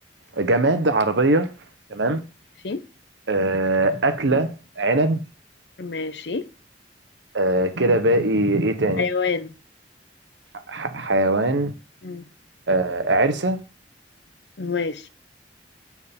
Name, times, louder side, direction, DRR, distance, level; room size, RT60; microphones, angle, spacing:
voice 1, 0.4-1.5 1.9-2.2 3.3-5.2 7.3-9.0 10.7-11.7 12.7-13.6, right 2 dB, 85° right, 1.0 m, -21 dB
voice 2, 5.8-6.5 9.0-9.5 12.0-12.2 14.6-15.1, left 4 dB, 70° left, 0.8 m, -27 dB
8.4 x 4.5 x 3.6 m
head